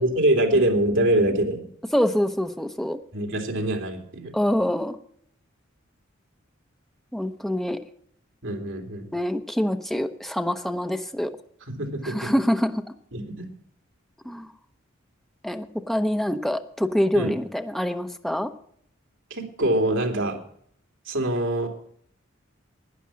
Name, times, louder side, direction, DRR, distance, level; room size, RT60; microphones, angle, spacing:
voice 1, 0.0-1.6 3.1-4.3 8.4-9.1 11.7-12.3 13.1-13.5 17.1-17.3 19.3-20.4 21.1-21.7, right 1 dB, 65° right, 2 dB, 2.8 m, -24 dB
voice 2, 1.9-3.0 4.3-5.0 7.1-7.8 9.1-11.3 12.0-12.8 14.2-14.5 15.4-18.5, equal, ahead, 7 dB, 0.8 m, -25 dB
11.5 x 10.0 x 6.2 m, 0.63 s
head